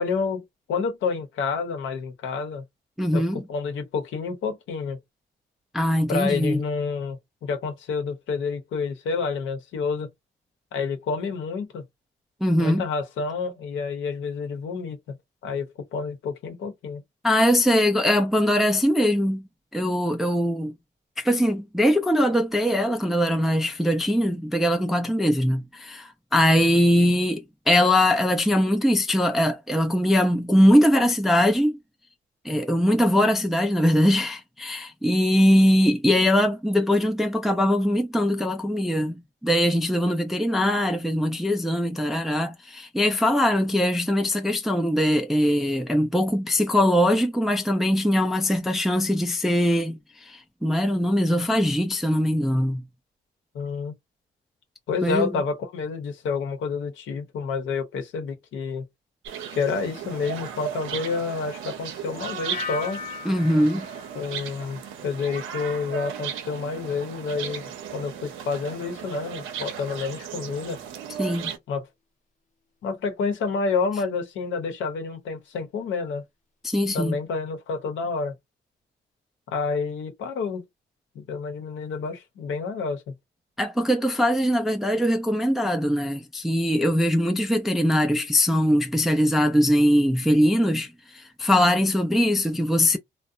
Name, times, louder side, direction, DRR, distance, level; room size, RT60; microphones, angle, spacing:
voice 1, 0.0-2.6 3.1-3.2 3.5-5.0 6.1-10.1 10.7-11.8 12.6-15.2 15.4-17.0 53.5-53.9 54.9-58.8 59.5-63.0 64.1-70.8 71.7-71.9 72.8-76.2 76.9-78.3 79.5-80.6 81.1-83.1, left 5 dB, 75° left, 0.8 m, -29 dB
voice 2, 3.0-3.4 5.7-6.6 12.4-12.8 17.2-19.4 19.7-20.7 21.2-31.8 32.4-52.8 55.0-55.3 63.3-63.9 71.2-71.5 76.6-77.2 83.6-93.0, equal, ahead, 0.3 m, -21 dB
sound 1, 59.2-71.6, right 8 dB, 85° right, 0.6 m, -36 dB
sound 2, 62.5-65.4 65.7-66.2, left 5 dB, 40° left, 0.7 m, -38 dB
2.6 x 2.0 x 2.4 m
cardioid pair, 90°, 20 cm